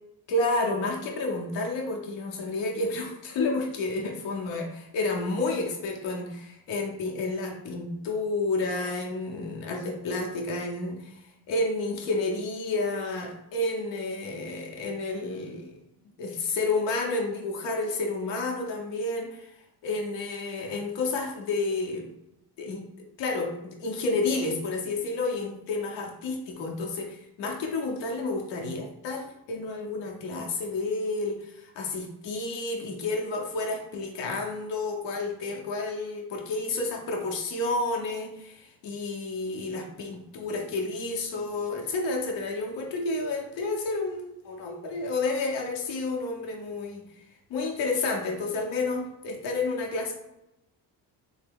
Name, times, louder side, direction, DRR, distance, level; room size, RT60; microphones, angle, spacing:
voice 1, 0.3-15.7 16.2-19.5 19.8-22.1 22.6-22.9 23.2-47.0 47.5-50.1, left 3 dB, 85° left, 1 dB, 0.8 m, -30 dB
3.4 x 2.1 x 3.5 m, 0.87 s
cardioid pair, 110°, 42 cm